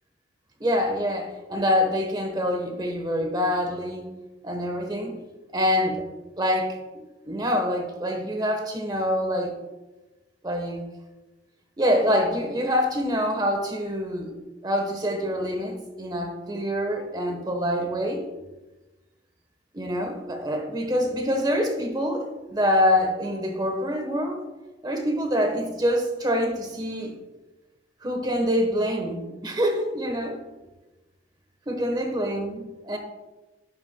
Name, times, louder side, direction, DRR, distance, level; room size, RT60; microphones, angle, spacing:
voice 1, 0.6-4.1 4.4-5.2 5.5-6.1 6.4-6.8 7.3-9.6 10.4-10.8 11.8-14.4 14.6-18.3 19.7-24.5 24.8-27.2 28.0-30.4 31.7-33.0, equal, 20° right, 4 dB, 1.1 m, -25 dB
10.5 x 10.5 x 2.2 m, 1.1 s
head